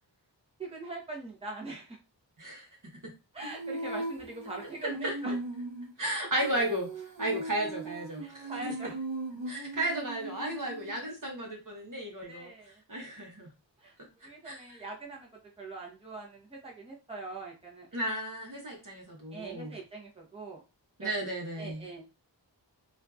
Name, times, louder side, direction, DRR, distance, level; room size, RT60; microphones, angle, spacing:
voice 1, 0.6-2.0 3.3-5.3 8.2-9.0 11.0-11.1 12.3-12.8 13.8-14.0 14.2-15.3 15.6-17.9 19.3-20.6 21.0-21.1 21.6-22.0, right 3 dB, 15° right, -2 dB, 0.8 m, -42 dB
Female singing, 3.4-11.1, right 2 dB, 85° right, 0.8 m, -39 dB
voice 2, 4.8-5.1 6.0-8.7 9.5-13.5 14.2-14.8 17.9-19.8 21.0-21.9, right 1 dB, 45° right, 0 dB, 0.9 m, -34 dB
2.8 x 2.5 x 2.3 m, 0.29 s
wide cardioid pair, 50°, 43 cm